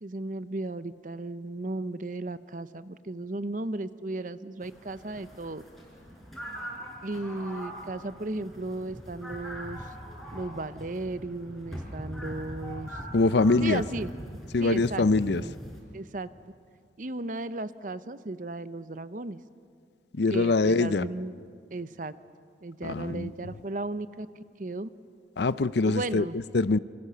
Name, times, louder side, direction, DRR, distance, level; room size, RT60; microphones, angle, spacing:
voice 1, 0.0-5.6 7.0-9.8 10.3-13.0 13.6-14.1 14.6-15.5 15.9-16.3 17.0-19.4 20.3-21.3 21.7-22.1 22.6-24.3 24.6-24.9 25.8-26.4, right 2 dB, 45° right, 13 dB, 0.7 m, -35 dB
sound 1, 4.6-15.8, equal, ahead, 4.8 m, -41 dB
voice 2, 13.1-13.8 14.5-15.4 20.1-21.1 22.8-23.5 25.4-26.3 26.5-26.8, left 3 dB, 65° left, 16 dB, 0.6 m, -24 dB
27.5 x 26.0 x 6.8 m, 2.2 s
head